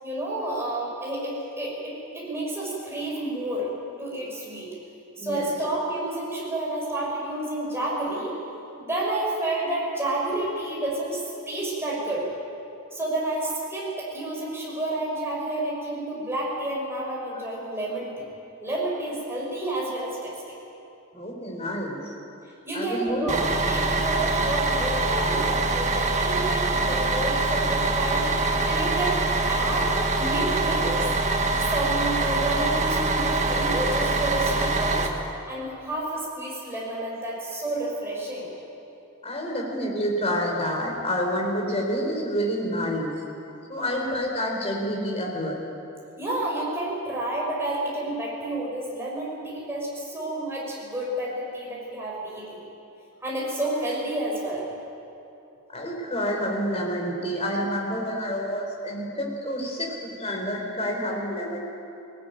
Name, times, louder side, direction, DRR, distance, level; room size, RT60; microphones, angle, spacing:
voice 1, 0.0-3.7 4.0-4.7 5.2-8.4 8.8-12.3 12.9-18.2 18.6-20.3 22.6-31.1 31.7-35.1 35.5-38.5 43.8-44.0 46.2-52.6 53.2-54.7, right 1 dB, 10° right, -4 dB, 6.5 m, -30 dB
voice 2, 21.1-22.0 22.7-23.3 39.2-43.1 43.7-45.7 55.7-61.6, equal, 30° left, 0 dB, 4.3 m, -28 dB
Bus, 23.3-35.1, right 2 dB, 35° right, 1.6 m, -24 dB
19.5 x 19.0 x 9.3 m, 2.7 s
head